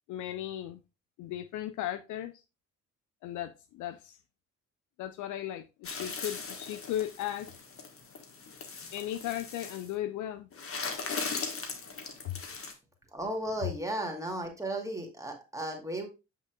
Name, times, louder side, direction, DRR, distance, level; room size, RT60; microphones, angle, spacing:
voice 1, 0.1-0.8 1.2-2.3 3.2-4.2 5.0-7.5 8.9-10.5 12.3-12.4, left 12 dB, 50° left, 0.5 m, -36 dB
sound 1, 5.8-9.9 10.5-12.7, left 4 dB, 35° left, 1.4 m, -39 dB
voice 2, 13.1-16.1, right 1 dB, 10° right, 2.2 m, -35 dB
7.4 x 6.0 x 2.3 m
figure-of-eight pair, 40°, 39 cm